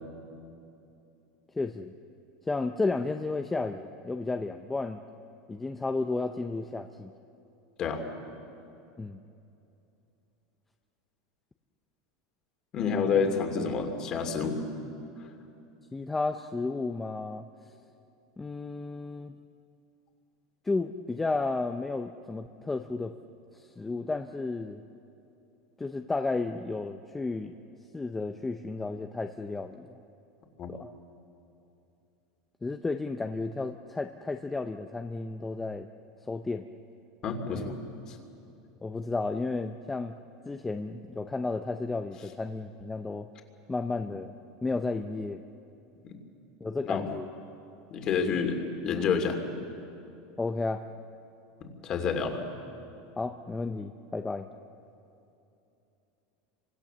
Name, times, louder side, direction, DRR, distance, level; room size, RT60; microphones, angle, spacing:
voice 1, 1.5-1.9 2.4-5.0 5.5-7.1 9.0-9.2 15.9-17.5 18.4-19.4 20.6-23.1 23.5-24.8 25.8-27.6 27.9-30.0 30.7-30.9 32.6-35.9 36.3-36.7 37.5-37.8 38.8-40.2 40.5-43.3 43.7-44.3 44.6-45.4 46.6-47.3 50.4-50.9 53.2-54.5, left 3 dB, 10° left, 6 dB, 0.6 m, -32 dB
voice 2, 12.7-14.6 15.2-15.3 30.6-30.7 37.2-37.7 38.1-38.2 46.0-46.1 46.8-47.1 47.9-49.4 51.6-52.4, left 5 dB, 35° left, 5 dB, 2.8 m, -29 dB
29.5 x 25.0 x 6.9 m, 2.8 s
supercardioid pair, 155°, 2 cm